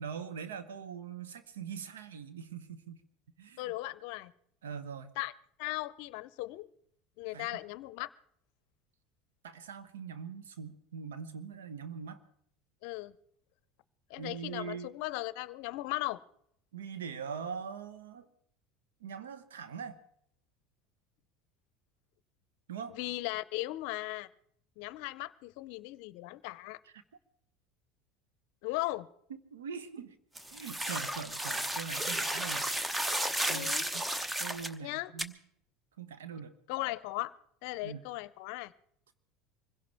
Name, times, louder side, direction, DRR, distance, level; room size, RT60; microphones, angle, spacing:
voice 1, 0.0-3.0 3.4-3.7 4.6-5.1 7.3-7.5 9.4-12.2 14.2-14.9 16.7-18.3 19.0-20.0 22.7-22.9 26.9-27.0 29.3-30.2 30.5-32.7 33.5-35.4 36.0-36.5 37.8-38.0, right 6 dB, 85° right, 9 dB, 1.2 m, -42 dB
voice 2, 3.6-4.3 5.2-5.3 5.6-6.7 7.2-8.1 12.8-13.2 14.1-16.2 22.9-24.3 24.8-26.8 28.6-29.1 33.5-33.9 34.8-35.1 36.7-37.3 37.6-38.7, left 19 dB, 65° left, 18 dB, 0.6 m, -37 dB
sound 1, 30.4-34.7 35.2-35.3, right 1 dB, 10° right, 1.0 m, -33 dB
25.0 x 16.5 x 3.5 m, 0.71 s
hypercardioid pair, 80°, 0 cm